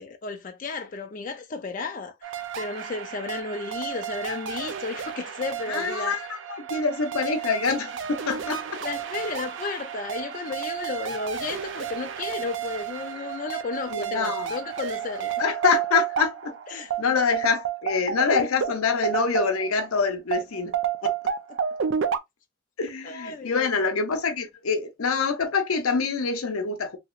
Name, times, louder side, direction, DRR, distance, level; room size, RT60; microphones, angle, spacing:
voice 1, 0.0-6.2 8.8-15.3 16.7-16.9 21.5-21.6 23.0-23.7, left 4 dB, 40° left, 0.3 m, -33 dB
sound 1, 2.2-19.9 20.3-22.2, right 8 dB, 60° right, 0.4 m, -31 dB
voice 2, 5.7-6.2 6.5-8.8 13.9-14.5 15.4-20.7 21.0-21.1 22.8-27.0, left 5 dB, 85° left, 0.7 m, -26 dB
2.9 x 2.9 x 2.3 m
head